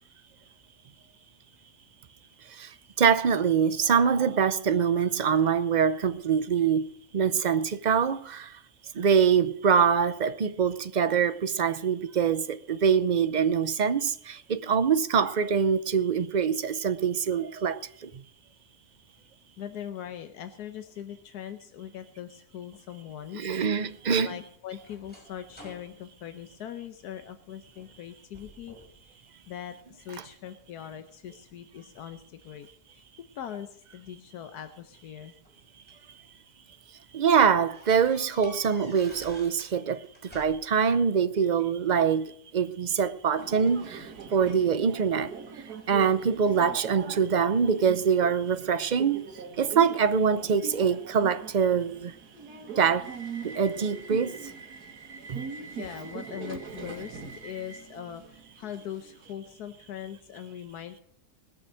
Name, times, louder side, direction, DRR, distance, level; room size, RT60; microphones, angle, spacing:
voice 1, 3.0-8.5 9.0-17.8 23.3-24.4 37.1-40.0 40.3-45.3 45.9-49.2 49.6-52.1 52.8-53.1 53.4-54.4 55.3-55.4, right 7 dB, 55° right, 0.5 m, -24 dB
voice 2, 19.6-23.6 24.2-28.8 29.5-32.7 32.9-33.0 33.3-35.3 55.7-61.0, left 10 dB, 85° left, 1.4 m, -41 dB
sound 1, 23.8-27.3 27.7-28.0 28.3-29.0 29.4-30.2 30.8-32.2 33.4-33.5 34.7-36.1 36.6-36.8 37.1-37.2 37.7-39.8 40.0-40.9, equal, 5° left, 5.7 m, -51 dB
Subway metro underground, 43.4-59.3, right 5 dB, 85° right, 2.3 m, -42 dB
20.0 x 7.2 x 6.4 m
omnidirectional pair, 1.6 m